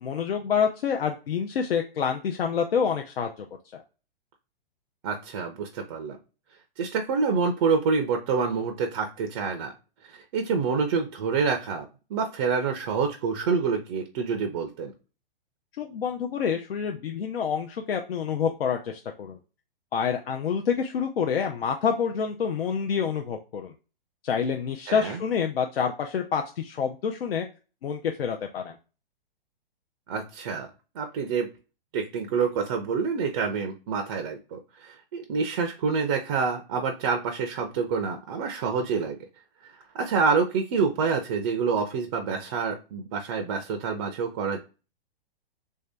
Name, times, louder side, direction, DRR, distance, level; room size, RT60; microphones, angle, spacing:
voice 1, 0.0-3.5 3.7-3.8 15.8-19.4 19.9-23.7 24.2-27.5 27.8-28.7, left 7 dB, 90° left, 3 dB, 0.6 m, -27 dB
voice 2, 5.0-6.2 6.8-9.7 10.1-11.9 12.1-14.9 24.9-25.2 30.1-30.7 31.0-31.5 31.9-39.2 39.7-44.6, right 5 dB, 30° right, 4 dB, 0.4 m, -27 dB
3.3 x 2.7 x 3.3 m, 0.32 s
hypercardioid pair, 145°, 29 cm